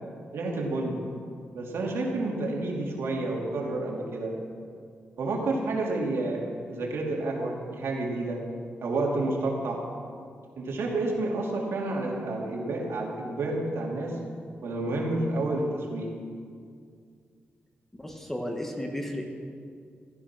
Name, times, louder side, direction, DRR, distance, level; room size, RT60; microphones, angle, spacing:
voice 1, 0.3-1.0 1.5-4.3 5.2-8.4 8.8-9.8 10.6-14.2 14.6-16.1, right 2 dB, 85° right, -2 dB, 2.9 m, -30 dB
voice 2, 18.0-19.3, left 1 dB, 10° left, 2 dB, 1.4 m, -33 dB
15.0 x 13.5 x 6.1 m, 2.2 s
wide cardioid pair, 175°, 4 cm